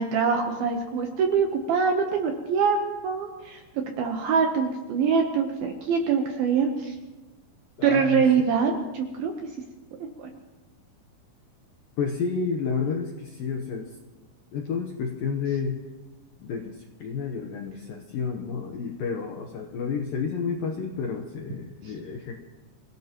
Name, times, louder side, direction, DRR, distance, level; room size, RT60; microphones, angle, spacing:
voice 1, 0.0-3.6 4.0-7.0 7.8-9.3 10.2-10.3, right 6 dB, 75° right, 3 dB, 2.3 m, -24 dB
voice 2, 7.8-8.5 12.0-13.9 14.5-15.8 16.4-22.4, left 5 dB, 80° left, 3 dB, 2.0 m, -30 dB
27.5 x 17.0 x 3.0 m, 1.2 s
omnidirectional pair, 5.5 m